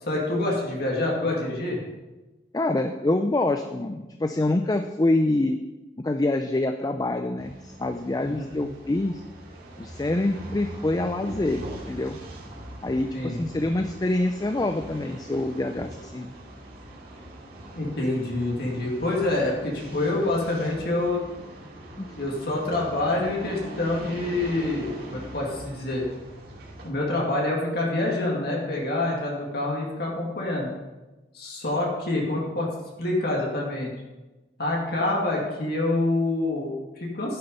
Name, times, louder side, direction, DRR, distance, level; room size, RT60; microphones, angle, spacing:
voice 1, 0.0-1.8 8.2-8.5 13.1-13.4 17.7-21.2 22.2-26.0 26.8-30.7 31.3-32.7 33.0-33.9 34.6-37.4, left 2 dB, 60° left, -2 dB, 2.3 m, -26 dB
voice 2, 2.5-5.6 6.0-9.2 9.8-12.2 12.8-16.3 22.0-22.1, left 2 dB, 20° left, 7 dB, 0.4 m, -26 dB
sound 1, 7.4-26.9, right 1 dB, 60° right, 2.4 m, -42 dB
10.5 x 6.8 x 5.4 m, 1.1 s
head